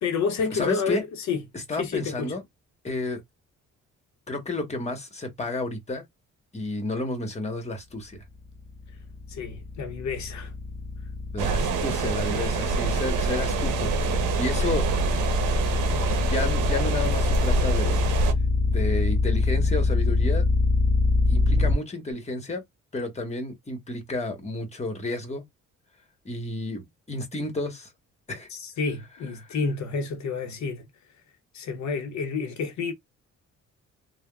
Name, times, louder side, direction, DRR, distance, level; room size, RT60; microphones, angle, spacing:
voice 1, 0.0-1.4 1.7-2.3 9.3-10.5 28.5-30.9 31.5-32.9, left 5 dB, 70° left, 0.7 m, -29 dB
voice 2, 0.5-1.0 1.5-2.4 2.8-3.2 4.3-6.0 6.5-8.2 11.3-14.8 16.2-18.0 18.6-20.4 21.3-22.6 22.9-25.4 26.2-27.9 28.3-28.5 29.4-29.5, left 2 dB, 20° left, 1.1 m, -31 dB
sound 1, 8.4-21.7, left 3 dB, 35° right, 1.3 m, -24 dB
sound 2, 11.4-18.3, right 4 dB, 85° right, 0.7 m, -26 dB
3.4 x 2.1 x 2.2 m
cardioid pair, 90°, 30 cm